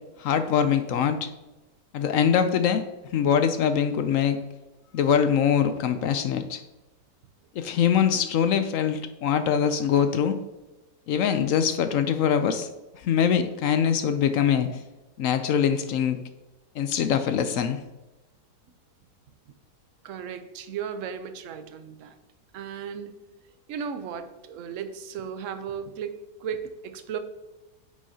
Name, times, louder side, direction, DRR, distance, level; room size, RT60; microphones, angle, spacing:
voice 1, 0.2-1.3 1.9-2.8 3.1-4.4 4.9-6.6 7.6-10.4 11.1-12.7 13.0-14.7 15.2-16.2 16.8-17.8, left 8 dB, 70° left, 10 dB, 0.8 m, -23 dB
voice 2, 20.0-22.1 22.5-23.1 23.7-27.2, right 7 dB, 60° right, 9 dB, 0.9 m, -35 dB
9.3 x 6.2 x 2.7 m, 1.1 s
omnidirectional pair, 1.8 m